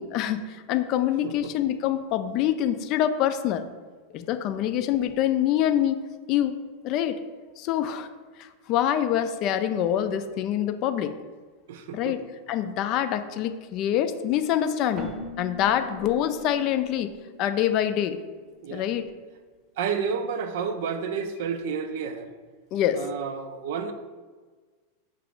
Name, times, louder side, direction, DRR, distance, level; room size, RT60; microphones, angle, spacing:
voice 1, 0.0-3.7 4.1-6.0 6.3-6.6 6.8-7.2 7.6-8.1 8.4-11.1 11.9-12.2 12.5-15.1 15.4-17.1 17.4-18.2 18.7-19.1 22.7-23.0, left 10 dB, 50° left, 10 dB, 0.3 m, -25 dB
voice 2, 11.7-12.1 18.6-18.9 19.8-22.3 22.9-23.9, right 6 dB, 65° right, 9 dB, 0.4 m, -30 dB
Keyboard (musical), 15.0-18.6, left 3 dB, 35° right, 0.7 m, -41 dB
4.8 x 2.4 x 3.6 m, 1.4 s
hypercardioid pair, 95°, 0 cm